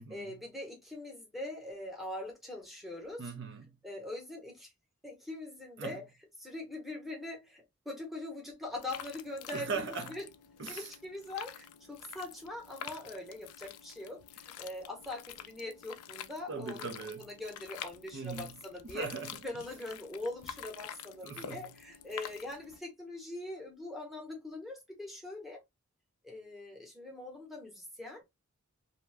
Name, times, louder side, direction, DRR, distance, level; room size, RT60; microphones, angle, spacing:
voice 1, 0.0-3.3 3.8-4.7 5.0-6.0 6.4-10.2 10.7-19.1 19.4-25.6 26.2-28.2, left 2 dB, ahead, 0.8 m, -42 dB
voice 2, 3.2-3.7 5.8-6.0 9.5-10.2 10.6-10.9 16.5-17.3 18.1-18.6 18.9-19.4 21.2-21.7, right 5 dB, 50° right, 0.5 m, -39 dB
sound 1, 8.8-22.8, left 9 dB, 80° left, 0.4 m, -48 dB
2.7 x 2.2 x 3.2 m
head